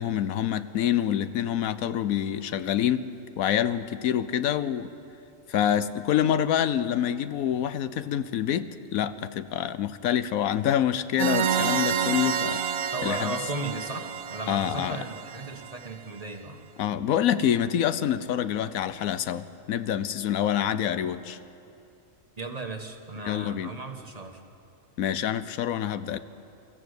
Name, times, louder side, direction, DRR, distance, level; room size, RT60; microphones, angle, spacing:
voice 1, 0.0-3.1 3.4-4.9 5.5-12.6 13.0-13.4 14.5-15.0 16.8-21.4 23.2-23.7 25.0-26.2, left 10 dB, 90° left, 13 dB, 1.1 m, -26 dB
sound 1, 11.2-15.9, right 7 dB, 75° right, 1.3 m, -29 dB
voice 2, 12.9-16.6 22.4-24.4, right 2 dB, 30° right, 5 dB, 1.2 m, -36 dB
24.5 x 14.5 x 8.0 m, 2.6 s
omnidirectional pair, 1.4 m